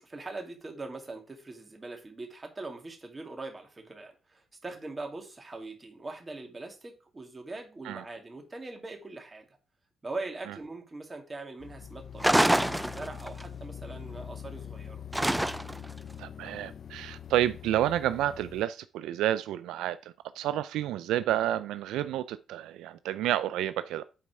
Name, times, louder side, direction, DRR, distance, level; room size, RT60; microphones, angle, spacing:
voice 1, 0.0-9.5 10.0-15.0, right 3 dB, 25° right, 2.4 m, -41 dB
sound 1, 11.6-18.7, left 8 dB, 50° left, 0.5 m, -44 dB
sound 2, 12.2-13.4 15.1-15.9, right 1 dB, 5° right, 0.3 m, -25 dB
voice 2, 16.2-24.0, right 12 dB, 90° right, 0.3 m, -30 dB
8.7 x 4.2 x 4.8 m
cardioid pair, 90°, 0 cm